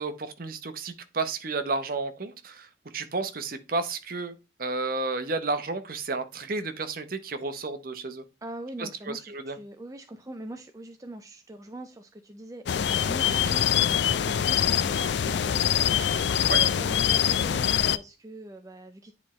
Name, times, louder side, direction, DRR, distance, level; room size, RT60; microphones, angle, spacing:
voice 1, 0.0-2.7 2.9-8.2 8.8-8.9 9.3-9.6 16.5-16.6, right 3 dB, 50° right, 0.8 m, -32 dB
voice 2, 8.4-19.1, right 1 dB, 15° right, 0.4 m, -42 dB
sound 1, 12.7-18.0, left 9 dB, 65° left, 0.4 m, -24 dB
9.6 x 4.3 x 3.1 m
head